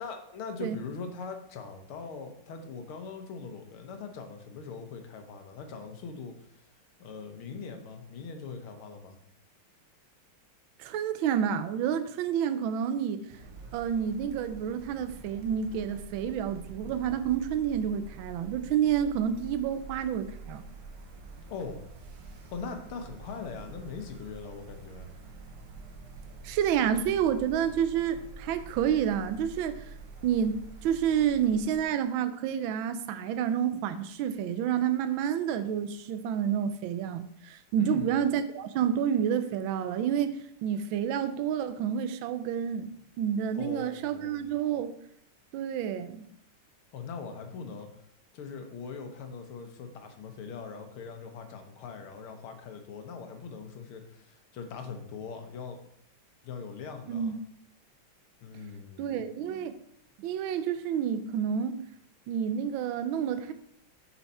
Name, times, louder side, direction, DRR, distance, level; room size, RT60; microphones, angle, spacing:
voice 1, 0.0-6.5 7.0-9.2 16.8-16.9 21.5-21.8 22.5-25.1 37.8-38.2 43.5-44.5 46.9-47.9 48.3-55.8 56.4-57.4 58.4-59.2, left 5 dB, 80° left, 5 dB, 1.9 m, -41 dB
voice 2, 10.8-13.2 13.7-20.6 26.4-29.9 30.2-44.9 45.5-46.3 57.1-57.3 59.0-59.7 60.2-61.8 62.3-63.5, right 8 dB, 75° right, 10 dB, 1.4 m, -29 dB
sound 1, 13.3-31.8, right 4 dB, 90° right, 1.9 m, -47 dB
7.0 x 5.7 x 4.2 m, 0.70 s
omnidirectional pair, 2.3 m